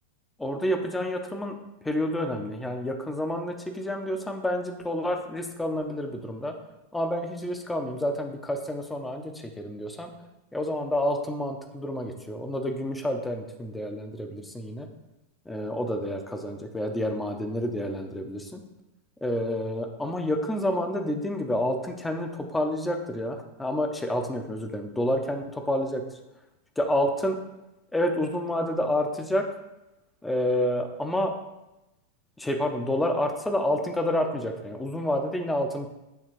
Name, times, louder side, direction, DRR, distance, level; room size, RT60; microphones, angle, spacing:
voice 1, 0.4-1.5 1.8-6.5 6.9-10.1 10.5-14.9 15.5-18.6 19.2-26.0 26.8-27.3 27.9-29.4 30.2-31.3 32.4-35.9, left 1 dB, 5° left, 4 dB, 0.7 m, -29 dB
9.0 x 3.3 x 3.2 m, 0.97 s
figure-of-eight pair, 90°, 0 cm